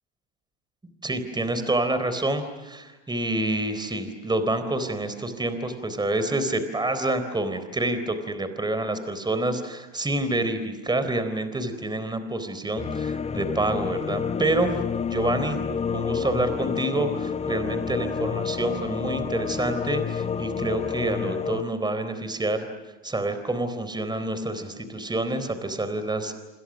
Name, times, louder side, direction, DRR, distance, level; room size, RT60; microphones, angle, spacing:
voice 1, 1.0-14.8 15.1-15.6 15.9-22.7 23.0-26.3, right 2 dB, 10° right, 10 dB, 3.9 m, -27 dB
sound 1, 12.8-21.6, left 6 dB, 15° left, 0.8 m, -29 dB
27.5 x 27.0 x 6.3 m, 1.1 s
hypercardioid pair, 100°, 38 cm